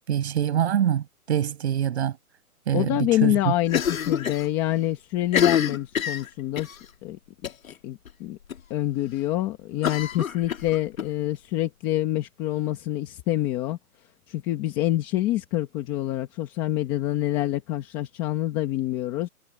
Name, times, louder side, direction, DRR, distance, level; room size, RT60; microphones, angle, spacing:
voice 1, 0.1-2.2 2.7-3.5, right 10 dB, 45° right, 6.8 m, -25 dB
voice 2, 2.7-7.2 7.8-8.4 8.7-13.8 14.3-19.3, left 14 dB, 10° left, 0.9 m, -26 dB
Cough, 3.7-4.5 4.7-4.8 5.2-6.8 7.4-7.7 8.1-8.2 8.5-8.6 9.8-11.1, left 8 dB, 65° left, 2.8 m, -26 dB
hypercardioid pair, 165°, 44 cm